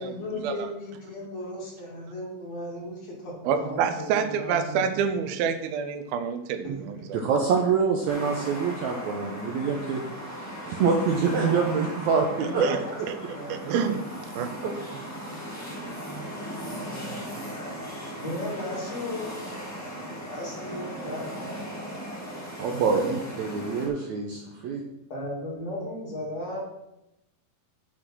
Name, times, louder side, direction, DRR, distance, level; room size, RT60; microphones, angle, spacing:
voice 1, 0.0-4.8 6.6-7.0 11.3-11.8 12.4-13.7 17.3-17.8 18.2-19.3 20.3-21.3 25.1-26.6, left 1 dB, 50° left, -3 dB, 3.4 m, -35 dB
voice 2, 3.4-7.2 12.4-12.8 13.5-14.0 14.4-14.5, right 7 dB, 90° right, 9 dB, 2.7 m, -27 dB
voice 3, 7.1-10.0 10.3-12.6 14.6-14.7 22.6-24.8, right 5 dB, 70° right, 1 dB, 1.8 m, -26 dB
sound 1, 8.1-23.9, equal, 15° left, 0.6 m, -37 dB
7.8 x 6.4 x 6.1 m, 0.90 s
omnidirectional pair, 4.1 m